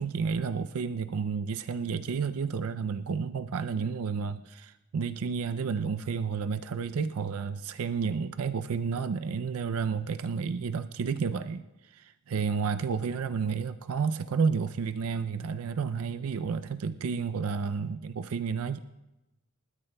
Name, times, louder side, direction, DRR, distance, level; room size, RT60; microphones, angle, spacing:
voice 1, 0.0-12.0 12.3-18.8, right 5 dB, 70° right, 11 dB, 0.4 m, -31 dB
27.5 x 13.5 x 2.2 m, 0.99 s
head